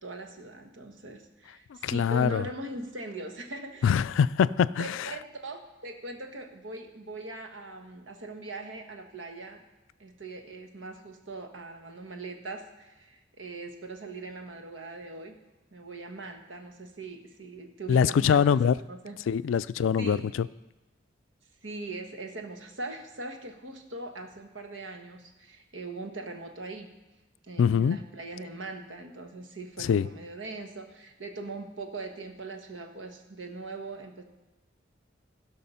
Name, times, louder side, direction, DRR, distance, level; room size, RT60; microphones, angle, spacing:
voice 1, 0.0-4.0 4.8-9.6 10.0-15.4 15.7-18.6 18.9-19.2 20.0-20.3 21.6-26.9 27.4-34.2, right 2 dB, 85° right, 5 dB, 1.3 m, -41 dB
voice 2, 1.8-2.4 3.8-5.1 17.9-18.8 19.3-20.5 27.6-28.0 29.8-30.1, left 7 dB, 90° left, 17 dB, 0.3 m, -23 dB
16.5 x 5.6 x 5.6 m, 1.1 s
head